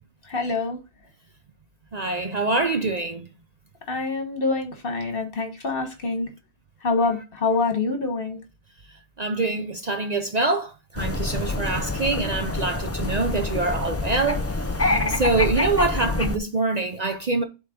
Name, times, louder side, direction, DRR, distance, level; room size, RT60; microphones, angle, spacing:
voice 1, 0.3-0.8 3.9-6.3 6.8-8.4 14.9-15.2, left 3 dB, 55° left, 1.6 m, -26 dB
voice 2, 1.9-3.3 9.2-14.4 14.7-17.4, right 3 dB, 45° right, 0.7 m, -25 dB
sound 1, 11.0-16.4, left 2 dB, 20° left, 0.5 m, -26 dB
7.6 x 3.6 x 5.1 m
omnidirectional pair, 1.1 m